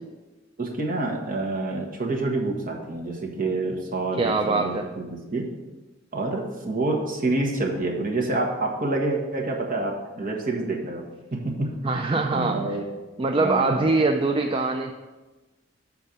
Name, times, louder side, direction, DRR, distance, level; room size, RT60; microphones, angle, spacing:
voice 1, 0.6-5.5 6.1-11.0 11.3-12.0 12.3-12.8 13.4-13.9, right 2 dB, 45° right, 0 dB, 1.4 m, -27 dB
voice 2, 4.2-4.9 11.8-12.8 13.2-14.9, right 3 dB, 25° right, 4 dB, 0.4 m, -23 dB
7.3 x 4.5 x 6.7 m, 1.2 s
head